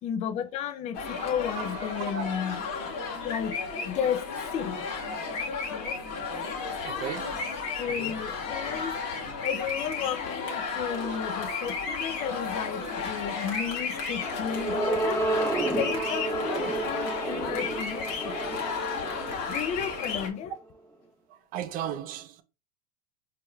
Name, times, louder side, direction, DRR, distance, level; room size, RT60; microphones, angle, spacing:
voice 1, 0.0-2.7 3.2-4.8 5.7-6.0 7.8-9.1 9.4-18.6 19.2-20.5, left 8 dB, 35° left, 0.4 m, -33 dB
sound 1, 0.9-20.3, left 4 dB, 55° left, 1.4 m, -33 dB
voice 2, 1.5-2.2 5.1-5.3 6.9-7.5 11.1-11.2 13.5-13.8 15.9-16.1 21.3-22.4, right 10 dB, 45° right, 0.6 m, -37 dB
sound 2, 13.9-20.5, right 2 dB, 15° left, 0.9 m, -31 dB
4.6 x 3.2 x 2.2 m
supercardioid pair, 120°, 20 cm